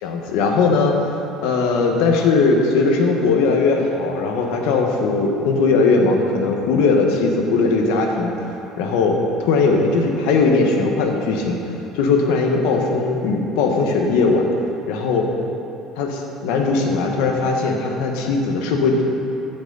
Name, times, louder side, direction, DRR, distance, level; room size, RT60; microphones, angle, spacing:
voice 1, 0.0-0.9 1.4-8.3 8.8-11.6 11.9-14.5 14.9-15.2 15.9-19.0, left 4 dB, 85° left, 2 dB, 1.3 m, -19 dB
15.5 x 6.1 x 4.0 m, 2.9 s
cardioid pair, 120°, 0 cm